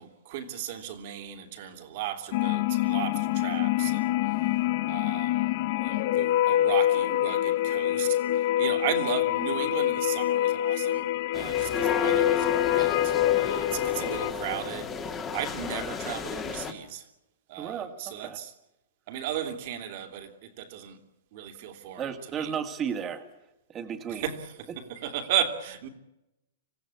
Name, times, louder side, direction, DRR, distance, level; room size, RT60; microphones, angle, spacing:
voice 1, 0.0-4.1 4.9-17.0 17.5-18.5 19.1-21.0 21.3-22.5 24.1-25.9, right 10 dB, 50° right, 2.9 m, -35 dB
sound 1, 2.3-14.3, left 13 dB, 50° left, 0.9 m, -26 dB
sound 2, 11.3-16.7, left 6 dB, 20° left, 2.2 m, -32 dB
voice 2, 17.6-18.4 22.0-23.2 23.7-24.3, right 7 dB, 20° right, 2.2 m, -34 dB
26.0 x 15.5 x 8.4 m
hypercardioid pair, 145°, 0 cm